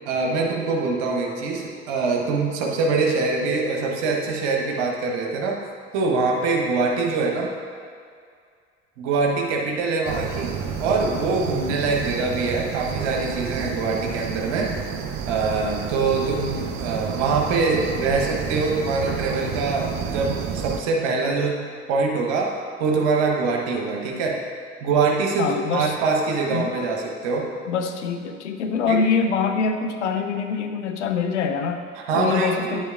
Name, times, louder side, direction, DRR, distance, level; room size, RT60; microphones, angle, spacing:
voice 1, 0.1-5.6 5.9-7.5 9.0-10.5 10.8-14.7 15.3-24.4 24.8-27.5 28.9-29.0 32.0-32.8, right 4 dB, 70° right, 0 dB, 1.1 m, -24 dB
sound 1, 10.0-20.8, right 7 dB, 50° right, 0.7 m, -30 dB
voice 2, 25.4-26.0 26.5-26.7 27.7-31.8 32.1-32.8, left 5 dB, 80° left, 6 dB, 0.6 m, -24 dB
9.9 x 8.4 x 2.4 m, 2.2 s
figure-of-eight pair, 50°, 35 cm